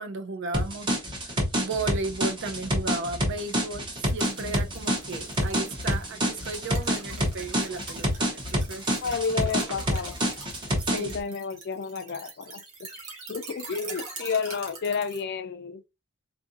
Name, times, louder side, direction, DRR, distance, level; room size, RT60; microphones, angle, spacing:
voice 1, 0.0-8.9 10.9-11.2, right 3 dB, 55° right, 0.5 m, -35 dB
sound 1, 0.5-11.2, equal, 20° right, 0.7 m, -27 dB
sound 2, 4.0-15.2, right 3 dB, 90° right, 1.5 m, -43 dB
voice 2, 9.0-10.2 10.9-12.6 13.3-15.8, left 5 dB, 50° left, 0.4 m, -31 dB
3.7 x 2.5 x 2.5 m
head